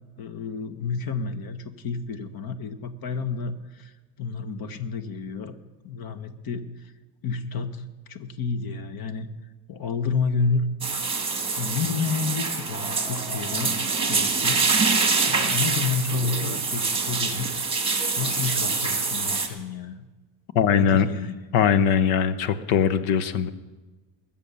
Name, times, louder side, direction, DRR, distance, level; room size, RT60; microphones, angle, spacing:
voice 1, 0.2-5.6 5.8-6.7 7.2-7.8 8.1-9.3 9.7-10.6 11.6-14.9 15.3-17.5 18.2-20.0 20.7-21.3, left 5 dB, 45° left, 11 dB, 1.3 m, -30 dB
sound 1, 10.8-19.5, right 4 dB, 10° right, 1.8 m, -25 dB
voice 2, 20.5-21.1 21.5-23.5, left 7 dB, 75° left, 13 dB, 1.1 m, -21 dB
21.5 x 7.2 x 6.9 m, 1.2 s
cardioid pair, 130°, 50 cm